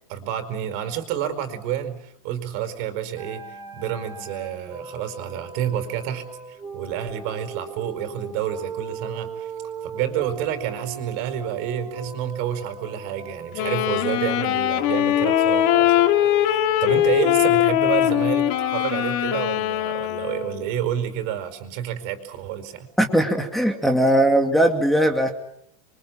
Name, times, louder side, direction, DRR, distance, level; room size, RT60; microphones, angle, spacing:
voice 1, 0.1-9.5 9.8-22.9, right 10 dB, 50° right, 9 dB, 4.8 m, -29 dB
sound 1, 3.2-19.2, right 6 dB, 15° right, 5.0 m, -37 dB
Wind instrument woodwind instrument, 13.6-20.7, left 13 dB, 50° left, 2.6 m, -21 dB
voice 2, 23.0-25.3, right 1 dB, ahead, 2 dB, 2.4 m, -19 dB
27.5 x 24.0 x 7.5 m, 0.72 s
supercardioid pair, 140°, 20 cm